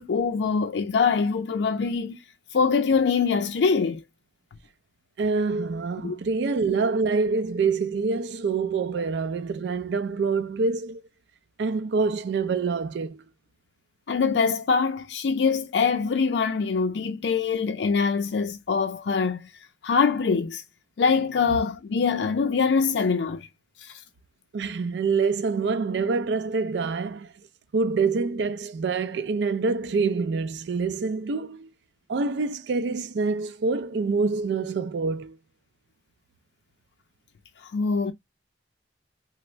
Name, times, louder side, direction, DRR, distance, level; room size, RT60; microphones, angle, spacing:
voice 1, 0.0-2.2 2.5-4.0 6.0-6.2 14.1-19.5 19.8-20.6 21.0-23.5 23.8-23.9 37.7-38.1, left 5 dB, 80° left, 0.4 m, -24 dB
voice 2, 5.2-11.0 11.6-13.2 24.5-27.3 27.7-31.7 32.1-35.4, right 4 dB, 75° right, 0.4 m, -26 dB
3.4 x 2.0 x 3.1 m
head